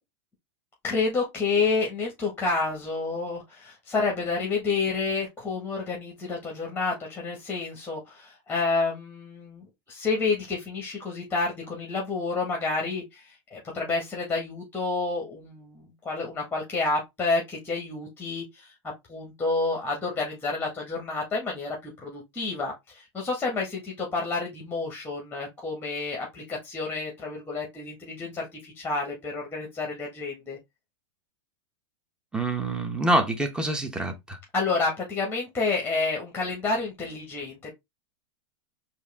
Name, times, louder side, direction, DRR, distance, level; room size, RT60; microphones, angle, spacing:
voice 1, 0.8-18.7 19.1-30.6 34.5-37.7, left 3 dB, 15° left, 1.7 m, -29 dB
voice 2, 32.3-34.4, right 1 dB, 5° right, 1.0 m, -26 dB
4.6 x 2.8 x 3.5 m
hypercardioid pair, 115°, 16 cm